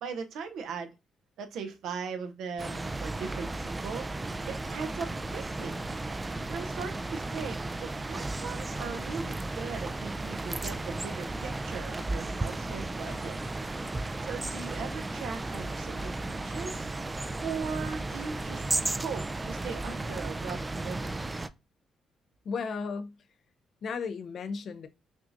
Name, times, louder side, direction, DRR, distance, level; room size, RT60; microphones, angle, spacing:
voice 1, 0.0-0.9 1.4-4.1 4.4-5.8 6.5-13.4 14.2-16.9 17.4-18.6 18.9-21.1, right 5 dB, 80° right, 0.6 m, -39 dB
sound 1, 2.6-21.5, right 2 dB, 20° right, 0.3 m, -34 dB
voice 2, 22.4-23.2 23.8-24.9, left 5 dB, 60° left, 0.5 m, -34 dB
6.0 x 2.5 x 2.5 m
cardioid pair, 90°, 0 cm